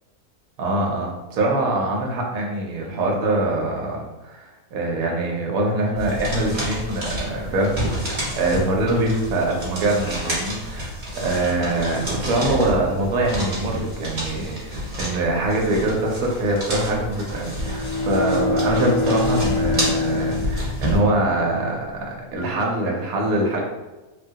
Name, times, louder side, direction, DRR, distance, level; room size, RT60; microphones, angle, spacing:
voice 1, 0.6-23.6, right 2 dB, 80° right, -1 dB, 1.1 m, -24 dB
sound 1, 6.0-21.0, equal, 35° right, 1.0 m, -29 dB
Bowed string instrument, 17.3-21.9, left 4 dB, 75° left, 1.0 m, -26 dB
3.6 x 2.2 x 2.7 m, 1.1 s
omnidirectional pair, 1.5 m